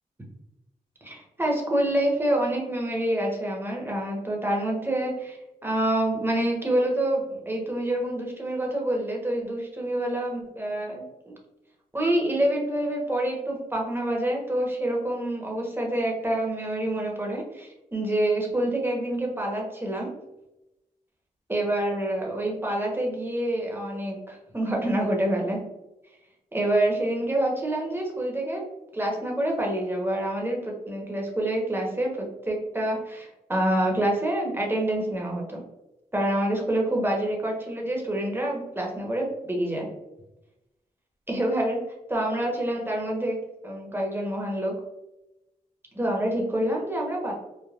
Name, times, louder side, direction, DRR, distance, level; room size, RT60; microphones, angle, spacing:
voice 1, 1.0-5.4 5.6-11.3 11.9-20.1 21.5-25.6 26.5-28.6 28.9-35.6 36.1-39.9 41.3-41.8 42.1-43.4 43.6-44.8 45.9-47.3, right 1 dB, 15° right, -1 dB, 1.0 m, -27 dB
3.3 x 2.2 x 2.4 m, 0.95 s
cardioid pair, 50°, 15 cm